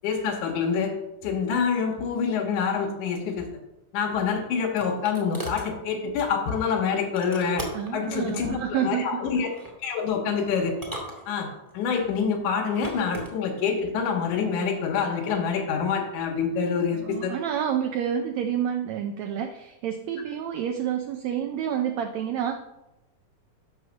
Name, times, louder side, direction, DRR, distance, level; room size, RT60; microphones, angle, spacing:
voice 1, 0.0-0.9 1.2-3.5 3.9-7.6 7.9-9.5 9.8-10.8 11.3-11.5 11.7-17.3, left 6 dB, 75° left, 1 dB, 2.5 m, -26 dB
sound 1, 4.0-5.7 7.2-8.0 9.3-9.8 10.7-11.7 12.6-13.3, right 1 dB, 10° right, 1.1 m, -38 dB
voice 2, 7.7-9.2 16.9-22.6, right 9 dB, 75° right, 5 dB, 1.7 m, -29 dB
6.5 x 6.2 x 6.4 m, 0.91 s
omnidirectional pair, 3.7 m